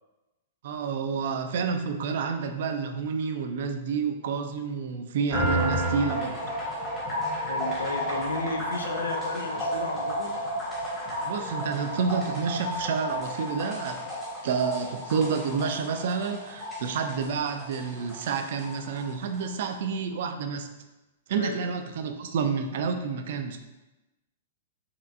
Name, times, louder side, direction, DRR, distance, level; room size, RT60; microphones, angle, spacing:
voice 1, 0.6-6.4 11.2-14.0 14.4-20.7 21.3-23.6, right 5 dB, 50° right, 6 dB, 0.4 m, -29 dB
sound 1, 5.3-19.5, equal, 20° left, 1.3 m, -32 dB
voice 2, 7.5-10.3 21.4-21.6, left 3 dB, 70° left, 4 dB, 0.5 m, -33 dB
4.4 x 3.1 x 2.6 m, 1.0 s
figure-of-eight pair, 105°, 0 cm